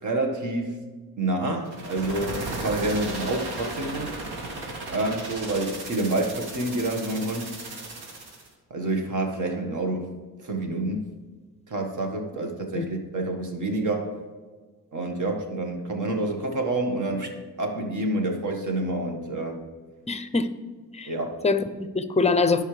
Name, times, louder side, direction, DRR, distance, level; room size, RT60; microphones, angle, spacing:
voice 1, 0.0-0.8 1.2-4.2 4.9-7.5 8.7-10.1 10.4-11.0 11.7-14.2 14.9-17.3 17.6-19.6 21.1-21.4, right 2 dB, 50° right, 3 dB, 1.7 m, -28 dB
sound 1, 1.6-8.5, right 2 dB, 85° right, 1.9 m, -35 dB
voice 2, 20.1-20.5 20.9-21.1 21.4-22.6, left 4 dB, 15° left, 11 dB, 0.6 m, -23 dB
15.0 x 5.5 x 3.3 m, 1.4 s
cardioid pair, 90°, 38 cm